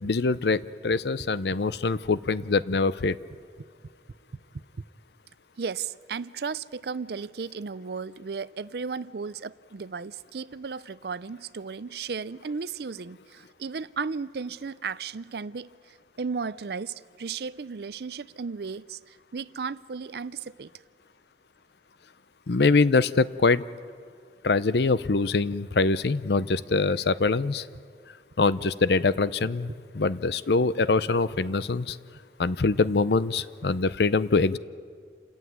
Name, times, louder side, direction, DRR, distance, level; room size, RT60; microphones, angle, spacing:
voice 1, 0.0-3.2 22.5-23.6 24.4-27.7 28.4-32.0 32.4-34.6, left 3 dB, 70° left, 0.6 m, -24 dB
voice 2, 5.6-20.7 29.7-29.8, right 5 dB, 65° right, 0.5 m, -35 dB
28.5 x 14.5 x 9.4 m
head